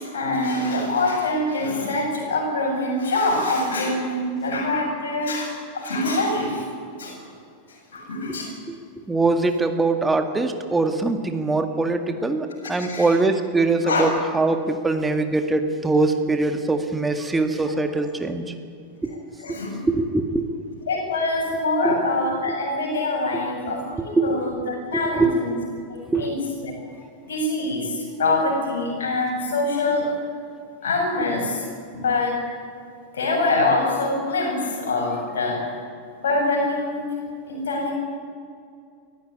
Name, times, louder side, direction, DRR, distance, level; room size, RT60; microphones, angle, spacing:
voice 1, 0.0-6.7 7.0-7.2 7.7-8.7 12.8-13.2 13.8-14.1 17.9-18.0 19.1-19.8 20.9-25.6 25.9-26.7 27.3-30.1 30.8-32.5 33.1-35.8 36.2-37.1 37.5-37.9, left 2 dB, 65° left, -1 dB, 7.5 m, -25 dB
voice 2, 9.1-14.1 14.3-18.4 19.8-20.5 21.8-22.0 24.2-24.3 24.9-25.4 26.1-26.3, right 3 dB, 10° right, 7 dB, 1.9 m, -22 dB
23.0 x 15.0 x 9.8 m, 2.3 s
figure-of-eight pair, 90°, 0 cm